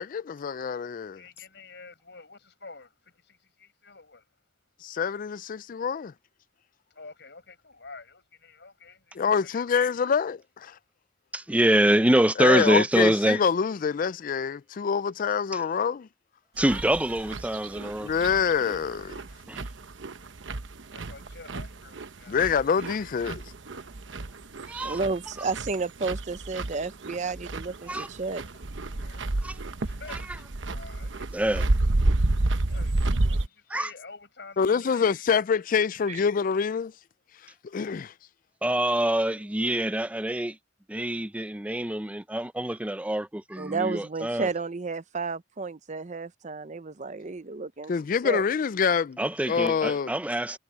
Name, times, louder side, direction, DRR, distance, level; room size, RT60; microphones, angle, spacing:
voice 1, 0.0-1.2 4.8-6.1 9.1-10.8 12.4-16.1 18.0-19.2 22.3-23.4 29.1-29.2 34.6-36.9 37.6-38.1 47.9-49.2 49.5-50.1, left 6 dB, 45° left, 0.4 m, -26 dB
voice 2, 1.1-4.3 7.0-9.7 20.9-22.4 29.8-31.3 32.7-35.2, left 4 dB, 65° left, 5.3 m, -48 dB
voice 3, 11.3-13.4 16.6-18.1 19.5-19.6 24.7-25.0 27.9-28.1 29.4-29.6 30.1-30.4 31.3-31.6 33.7-33.9 38.6-40.6 40.9-44.5 49.2-50.6, right 1 dB, 10° right, 0.6 m, -25 dB
sound 1, 16.6-33.5, right 2 dB, 90° right, 1.0 m, -30 dB
voice 4, 24.8-28.4 36.1-36.2 43.6-47.9 48.2-48.4, right 4 dB, 40° right, 0.7 m, -32 dB
head